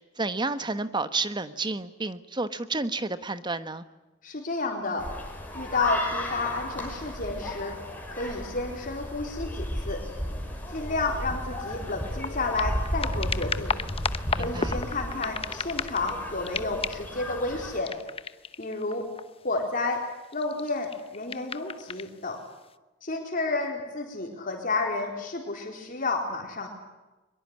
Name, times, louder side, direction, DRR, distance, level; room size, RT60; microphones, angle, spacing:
voice 1, 0.2-3.8 14.3-14.7, right 3 dB, 25° right, 12 dB, 1.3 m, -30 dB
voice 2, 4.2-5.1 5.5-7.8 8.1-10.1 10.7-13.7 14.3-17.9 18.6-19.1 19.4-20.0 20.3-22.4 23.0-26.7, left 3 dB, 45° left, 1 dB, 4.2 m, -31 dB
sound 1, 5.0-17.8, left 1 dB, 10° left, 6.0 m, -34 dB
sound 2, 10.8-10.9 11.3-16.2 16.4-17.2 17.8-19.5 20.2-22.1 22.7-22.8, left 5 dB, 30° left, 0.9 m, -34 dB
23.5 x 22.5 x 9.7 m, 1.1 s
head